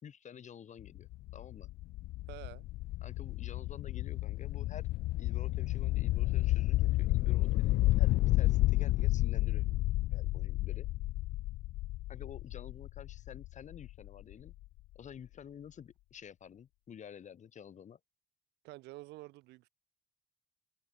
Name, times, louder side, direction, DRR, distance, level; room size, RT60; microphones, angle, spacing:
voice 1, 0.0-1.7 3.0-4.9 5.2-9.7 10.1-10.9 12.1-14.5 14.9-18.0, left 8 dB, 45° left, 4.1 m, -50 dB
sound 1, 0.8-14.5, left 18 dB, 70° left, 0.4 m, -31 dB
voice 2, 2.3-2.7 18.6-19.7, right 20 dB, 90° right, 3.7 m, -49 dB
open air
cardioid pair, 110°, 17 cm